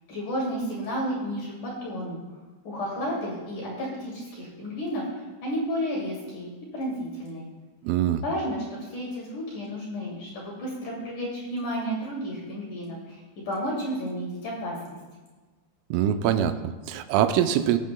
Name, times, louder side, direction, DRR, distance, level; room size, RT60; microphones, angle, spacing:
voice 1, 0.1-2.2 2.6-7.5 8.2-13.2 13.5-15.0, equal, 45° left, -4 dB, 3.4 m, -32 dB
voice 2, 7.8-8.2 15.9-17.8, right 10 dB, 85° right, 9 dB, 3.2 m, -23 dB
21.0 x 8.5 x 2.2 m, 1.3 s
omnidirectional pair, 5.6 m